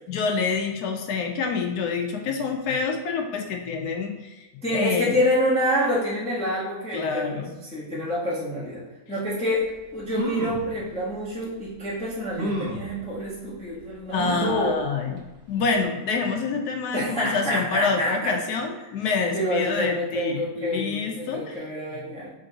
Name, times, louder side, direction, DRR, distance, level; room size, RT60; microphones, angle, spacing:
voice 1, 0.1-4.4 4.7-5.1 6.9-7.5 14.1-15.2 15.5-21.5, left 4 dB, 80° left, 3 dB, 1.2 m, -27 dB
voice 2, 4.6-8.8 9.1-9.7 9.9-14.8 16.9-18.4 19.3-22.3, equal, 5° left, -7 dB, 1.0 m, -27 dB
sound 1, 9.7-9.8 10.1-10.7 11.4-11.5 12.4-12.9 14.2-14.7 15.2-15.3 15.6-15.7, equal, 50° right, 0.9 m, -30 dB
3.9 x 3.4 x 3.8 m, 1.1 s
omnidirectional pair, 1.6 m